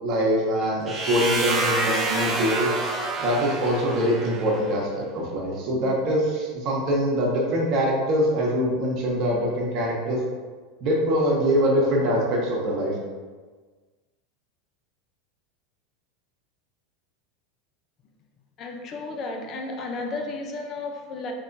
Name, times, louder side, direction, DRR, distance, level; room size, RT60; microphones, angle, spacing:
voice 1, 0.0-2.7 3.2-10.2 10.8-13.0, equal, 50° right, -2 dB, 1.1 m, -23 dB
sound 1, 0.9-4.7, right 2 dB, 25° right, 0.6 m, -27 dB
voice 2, 18.6-21.3, left 3 dB, 40° left, 2 dB, 0.5 m, -33 dB
4.1 x 3.0 x 2.6 m, 1.4 s
hypercardioid pair, 95°, 0 cm